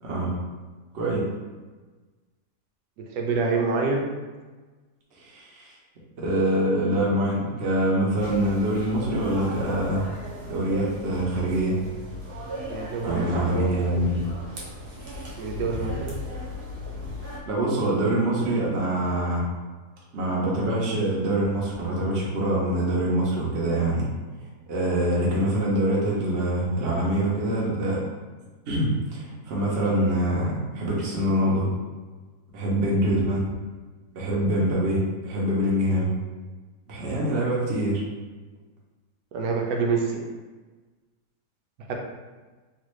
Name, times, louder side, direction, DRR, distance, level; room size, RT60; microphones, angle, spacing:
voice 1, 0.0-0.3 0.9-1.2 5.2-5.7 6.2-10.1 10.5-11.8 13.0-14.2 17.4-19.4 20.1-24.1 24.7-28.0 28.7-31.7 32.5-33.5 34.1-36.1 36.9-38.0, right 1 dB, 55° right, -5 dB, 0.8 m, -24 dB
voice 2, 3.1-4.1 12.7-14.0 15.4-16.2 39.3-40.2 41.9-42.0, right 4 dB, 90° right, 1 dB, 1.2 m, -27 dB
sound 1, 8.2-17.4, left 1 dB, 75° right, 1.5 m, -37 dB
3.3 x 2.4 x 3.0 m, 1.3 s
omnidirectional pair, 1.7 m